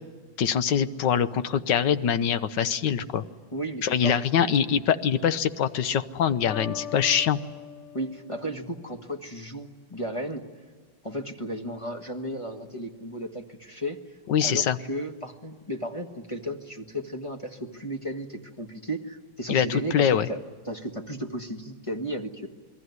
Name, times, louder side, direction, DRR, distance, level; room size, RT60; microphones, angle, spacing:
voice 1, 0.4-3.2 3.8-7.4 14.3-14.8 19.5-20.3, left 8 dB, 70° left, 12 dB, 1.6 m, -24 dB
voice 2, 3.5-4.6 7.9-10.4 11.0-14.0 14.4-22.5, equal, 20° left, 4 dB, 1.5 m, -34 dB
sound 1, 6.5-9.3, left 9 dB, 90° left, 1.8 m, -41 dB
28.5 x 21.0 x 9.6 m, 1.5 s
omnidirectional pair, 2.0 m